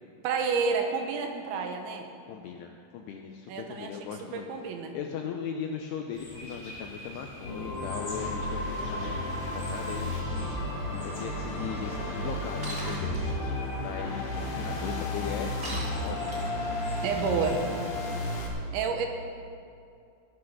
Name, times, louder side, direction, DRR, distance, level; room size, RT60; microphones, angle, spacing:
voice 1, 0.2-2.1 3.5-4.9 17.0-17.7 18.7-19.1, right 5 dB, 80° right, 4 dB, 3.3 m, -30 dB
voice 2, 2.3-4.5 4.9-10.1 11.0-13.2 13.8-14.3 14.6-15.5 16.0-16.5, left 7 dB, 85° left, 2 dB, 2.4 m, -38 dB
sound 1, 6.1-17.5, left 1 dB, 25° left, 3.1 m, -49 dB
sound 2, 7.4-18.5, left 1 dB, 55° left, 1.5 m, -33 dB
Shatter, 12.6-13.2 15.6-16.7, right 1 dB, 30° right, 1.5 m, -38 dB
16.5 x 8.6 x 6.1 m, 2.5 s
omnidirectional pair, 5.5 m